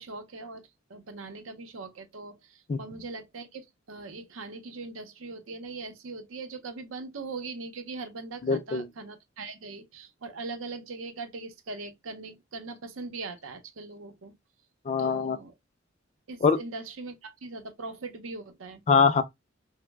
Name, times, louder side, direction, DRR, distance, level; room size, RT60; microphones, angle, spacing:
voice 1, 0.0-14.3 15.0-15.5 16.3-18.8, right 3 dB, 90° right, 0.6 m, -40 dB
voice 2, 8.4-8.9 14.9-15.4 16.4-16.6 18.9-19.2, left 5 dB, 35° left, 0.3 m, -23 dB
2.9 x 2.0 x 3.4 m
head